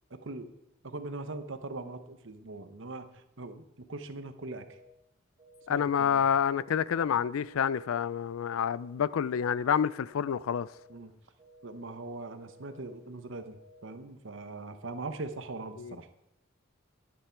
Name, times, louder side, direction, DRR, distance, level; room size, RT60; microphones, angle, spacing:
voice 1, 0.1-0.5 0.8-4.7 5.7-6.2 10.9-11.1 11.6-16.1, right 2 dB, 65° right, 1.0 m, -41 dB
sound 1, 4.4-4.9 5.4-5.9 6.4-6.9 7.4-7.9 8.4-8.9 9.4-9.9 10.4-10.9 11.4-11.9 12.4-12.9 13.4-13.9, equal, 30° right, 1.5 m, -57 dB
voice 2, 5.7-10.7 15.8-16.0, left 8 dB, 90° left, 0.4 m, -28 dB
11.0 x 10.5 x 4.6 m
head